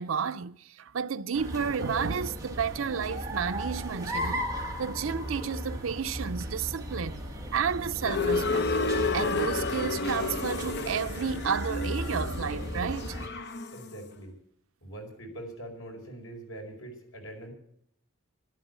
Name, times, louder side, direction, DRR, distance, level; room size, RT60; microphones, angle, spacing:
voice 1, 0.0-4.5 4.8-7.2 7.5-8.8 9.1-13.2, right 6 dB, 80° right, 0.6 m, -31 dB
sound 1, 1.3-13.3, equal, 20° right, 2.1 m, -36 dB
sound 2, 8.0-13.9, left 3 dB, 60° left, 0.8 m, -31 dB
voice 2, 13.7-14.3 14.8-17.5, right 1 dB, 85° left, 4.9 m, -43 dB
12.0 x 11.5 x 9.4 m
head